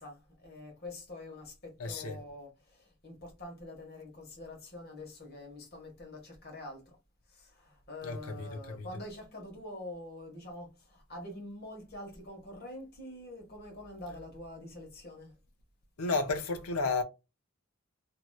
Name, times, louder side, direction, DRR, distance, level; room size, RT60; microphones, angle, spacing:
voice 1, 0.0-7.0 7.3-15.3, left 1 dB, 45° left, 1.4 m, -46 dB
voice 2, 1.8-2.2 8.0-8.9 16.0-17.0, left 3 dB, 85° left, 0.7 m, -32 dB
3.0 x 2.8 x 2.3 m
head